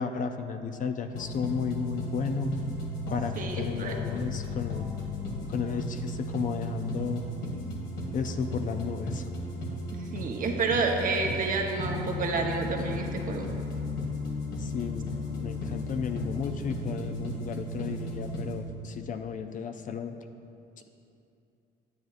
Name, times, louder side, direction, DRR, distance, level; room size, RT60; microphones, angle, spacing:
voice 1, 0.0-2.6 3.1-4.9 5.5-7.2 8.1-9.3 14.6-20.2, left 6 dB, 45° left, 7 dB, 0.5 m, -33 dB
sound 1, 1.1-18.5, left 1 dB, 75° left, 1.8 m, -35 dB
voice 2, 3.4-3.9 9.9-13.5, right 4 dB, 45° right, 1 dB, 1.0 m, -29 dB
9.4 x 9.3 x 2.5 m, 2.6 s
cardioid pair, 100°, 19 cm